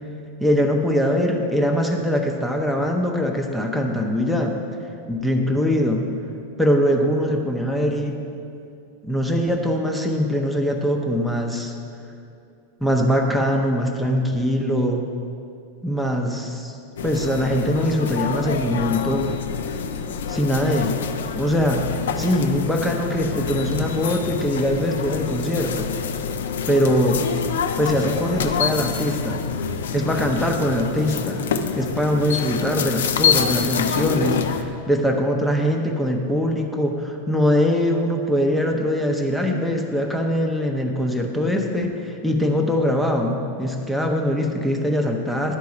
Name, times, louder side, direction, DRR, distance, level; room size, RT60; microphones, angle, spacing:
voice 1, 0.4-4.6 5.1-6.1 6.6-8.2 9.0-11.7 12.8-15.0 15.8-16.8 17.0-19.3 20.3-21.1 21.3-21.9 22.2-26.0 26.7-27.3 27.8-29.4 29.9-45.6, equal, ahead, 1 dB, 0.7 m, -22 dB
sound 1, 17.0-34.6, left 6 dB, 60° left, 0.4 m, -26 dB
10.5 x 4.6 x 5.3 m, 2.5 s
figure-of-eight pair, 90°, 0 cm